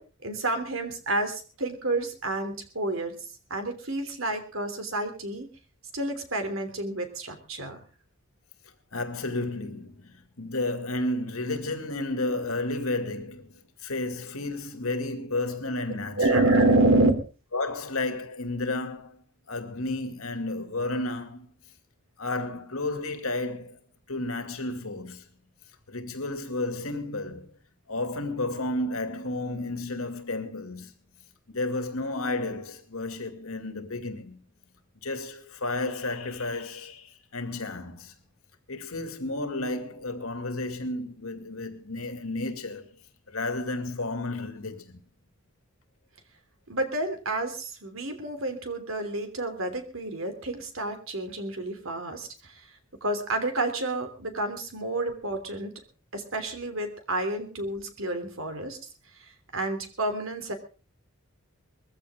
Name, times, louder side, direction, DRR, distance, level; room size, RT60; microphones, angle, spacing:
voice 1, 0.2-3.1 3.5-5.5 5.9-7.8 16.2-17.1 46.7-52.6 53.0-55.7 56.1-58.8 59.5-60.5, right 2 dB, 70° right, 3.2 m, -28 dB
voice 2, 8.9-13.5 13.8-16.4 17.5-19.2 19.5-21.5 22.2-23.8 24.1-25.2 25.9-27.5 27.9-30.9 31.5-34.4 35.0-38.1 38.7-43.0 43.3-45.0, left 2 dB, 85° left, 2.4 m, -32 dB
21.0 x 15.0 x 3.7 m
head